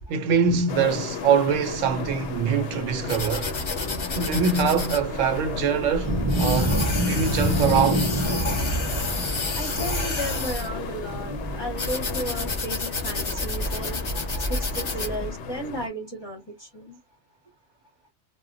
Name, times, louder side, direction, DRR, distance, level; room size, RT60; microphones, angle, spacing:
voice 1, 0.1-3.6 4.2-8.1, right 6 dB, 80° right, 0.9 m, -24 dB
sound 1, 0.7-15.9, left 5 dB, 70° left, 0.8 m, -35 dB
sound 2, 3.1-15.1, left 2 dB, 45° left, 0.4 m, -30 dB
sound 3, 6.0-15.3, equal, 30° right, 0.6 m, -29 dB
voice 2, 9.6-14.0 14.5-17.0, right 1 dB, 25° left, 0.8 m, -34 dB
2.1 x 2.1 x 3.7 m
omnidirectional pair, 1.3 m